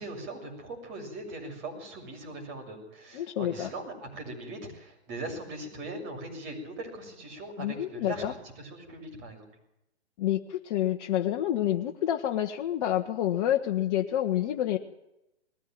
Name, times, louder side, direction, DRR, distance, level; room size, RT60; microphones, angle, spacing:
voice 1, 0.0-9.5, right 2 dB, 35° right, 2 dB, 7.0 m, -40 dB
voice 2, 3.1-3.7 7.6-8.3 10.2-14.8, left 12 dB, 40° left, 2 dB, 1.3 m, -28 dB
20.5 x 15.0 x 9.3 m, 0.86 s
hypercardioid pair, 130°, 34 cm